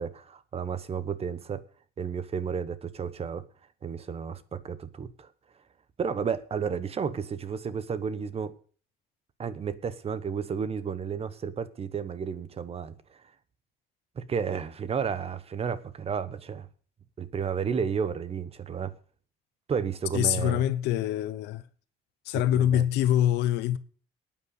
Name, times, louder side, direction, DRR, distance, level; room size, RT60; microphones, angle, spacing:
voice 1, 0.0-1.6 2.0-3.5 3.8-5.3 6.0-8.5 9.4-13.2 14.2-16.7 17.2-19.0 19.7-20.6 22.5-22.8, right 6 dB, 35° right, 1.1 m, -32 dB
voice 2, 20.1-21.6 22.2-23.8, left 11 dB, 85° left, 1.0 m, -25 dB
12.5 x 9.2 x 6.5 m
cardioid pair, 110°, 17 cm